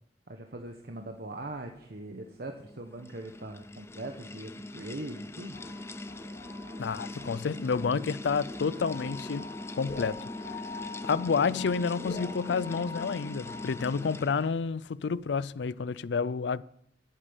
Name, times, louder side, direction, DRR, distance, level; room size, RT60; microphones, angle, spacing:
voice 1, 0.3-5.6, right 2 dB, 55° right, 1.1 m, -41 dB
sound 1, 2.5-14.7, left 2 dB, 15° left, 0.5 m, -42 dB
sound 2, 5.5-14.2, left 3 dB, 45° left, 3.0 m, -45 dB
voice 2, 6.8-9.5 9.7-10.2 11.0-16.6, left 5 dB, 70° left, 0.4 m, -29 dB
13.5 x 8.5 x 7.0 m
head